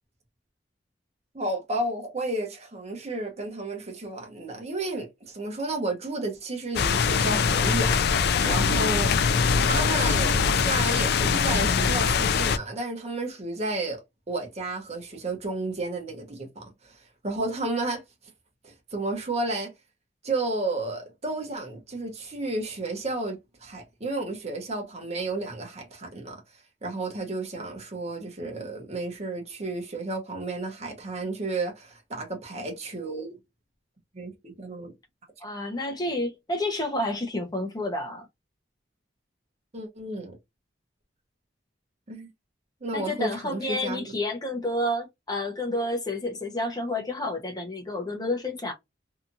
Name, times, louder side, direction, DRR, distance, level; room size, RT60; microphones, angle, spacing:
voice 1, 1.3-9.1 9.6-18.0 18.6-19.7 20.2-26.4 26.8-33.4 34.1-34.9 39.7-40.4 42.1-42.3 42.8-44.0, right 2 dB, 35° right, 0.9 m, -32 dB
sound 1, 6.7-12.6, left 5 dB, 60° left, 0.3 m, -23 dB
voice 2, 35.4-38.3 42.9-48.7, left 1 dB, 20° left, 0.7 m, -30 dB
2.8 x 2.4 x 2.5 m
head